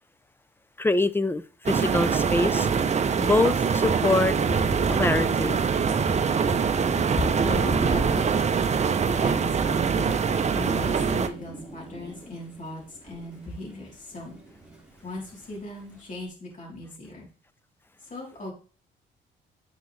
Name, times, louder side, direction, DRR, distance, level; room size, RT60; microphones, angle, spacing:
voice 1, 0.8-2.7 3.2-4.4 4.9-5.6, left 2 dB, 10° left, 16 dB, 0.4 m, -24 dB
sound 1, 1.7-11.3, right 6 dB, 35° right, 0.6 m, -24 dB
Thunder, 4.0-13.8 14.1-15.2, right 2 dB, 5° right, 2.6 m, -35 dB
voice 2, 7.4-8.6 9.0-9.3 9.6-10.2 10.5-14.4 15.0-17.3 18.1-18.5, left 2 dB, 40° left, -3 dB, 3.3 m, -38 dB
9.2 x 4.9 x 3.2 m, 0.38 s
cardioid pair, 90°, 20 cm